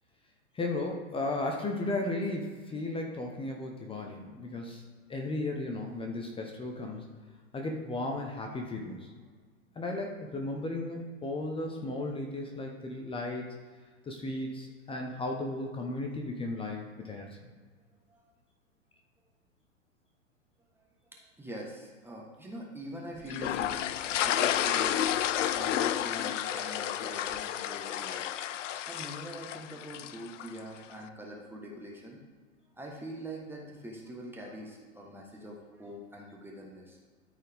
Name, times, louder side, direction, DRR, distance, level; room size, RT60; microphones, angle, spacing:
voice 1, 0.5-4.8 5.1-7.1 7.5-9.0 9.8-13.5 14.1-17.3, left 2 dB, 15° left, 1 dB, 0.9 m, -35 dB
voice 2, 21.1-28.4 28.9-32.2 32.7-37.0, equal, 5° right, -2 dB, 1.2 m, -43 dB
sound 1, 23.3-30.6, left 11 dB, 60° left, 0.5 m, -31 dB
13.0 x 4.6 x 3.5 m, 1.5 s
hypercardioid pair, 110°, 42 cm